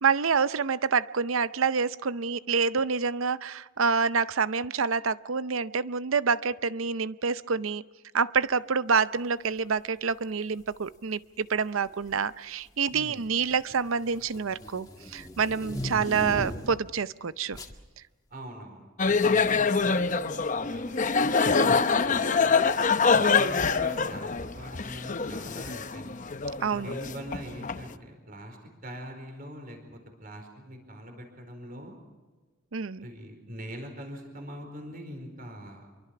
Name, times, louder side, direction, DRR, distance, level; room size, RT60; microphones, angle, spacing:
voice 1, 0.0-7.8 8.1-17.6 21.5-21.8 26.6-26.9 32.7-33.1, right 5 dB, 80° right, 15 dB, 0.7 m, -27 dB
sound 1, 10.6-10.9 11.9-12.3 12.7-16.9 17.5-17.8, equal, 20° left, 1.9 m, -38 dB
voice 2, 12.9-13.2 18.3-21.3 22.0-22.7 23.1-26.2 26.8-28.6 28.8-31.9 33.0-35.9, equal, 45° right, 5 dB, 4.6 m, -43 dB
sound 2, 19.0-27.8, left 5 dB, 40° left, 0.8 m, -25 dB
26.5 x 23.5 x 5.9 m, 1.3 s
head